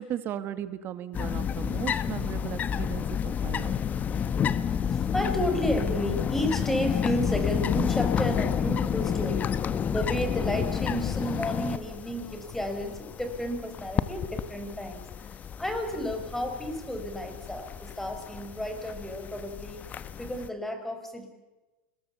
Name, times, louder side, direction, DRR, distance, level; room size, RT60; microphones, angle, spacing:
voice 1, 0.0-3.7 4.3-4.4, right 10 dB, 40° right, 12 dB, 2.0 m, -36 dB
sound 1, 1.1-20.5, left 8 dB, 30° left, 1.1 m, -30 dB
voice 2, 4.7-9.5 9.9-19.8 20.2-21.3, equal, 5° left, 6 dB, 5.1 m, -32 dB
30.0 x 21.0 x 7.1 m, 1.1 s
hypercardioid pair, 105°, 5 cm